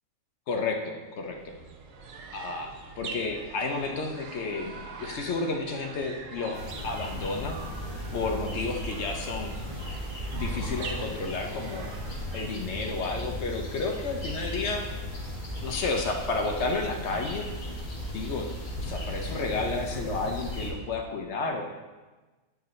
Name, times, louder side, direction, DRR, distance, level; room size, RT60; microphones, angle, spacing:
voice 1, 0.5-1.6 2.3-7.6 8.1-9.5 10.3-11.9 12.3-14.9 15.6-17.5 18.1-18.5 18.8-21.6, left 3 dB, 60° left, 3 dB, 0.9 m, -31 dB
sound 1, 1.1-12.7, right 4 dB, 65° right, 1.1 m, -43 dB
sound 2, 6.5-20.7, equal, 35° left, 1.5 m, -36 dB
8.9 x 4.8 x 3.1 m, 1.2 s
omnidirectional pair, 1.5 m